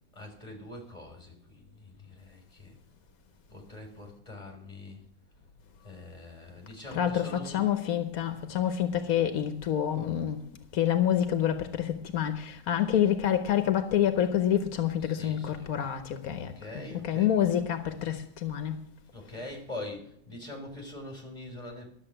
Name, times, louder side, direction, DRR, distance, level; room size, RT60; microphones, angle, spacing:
voice 1, 0.1-2.8 3.5-5.0 5.8-7.7 15.0-15.9 16.4-17.3 19.1-21.9, left 1 dB, 25° left, 3.6 m, -43 dB
voice 2, 6.9-10.4 10.7-18.8, left 10 dB, 80° left, 1.3 m, -27 dB
12.0 x 7.1 x 8.8 m
omnidirectional pair, 1.5 m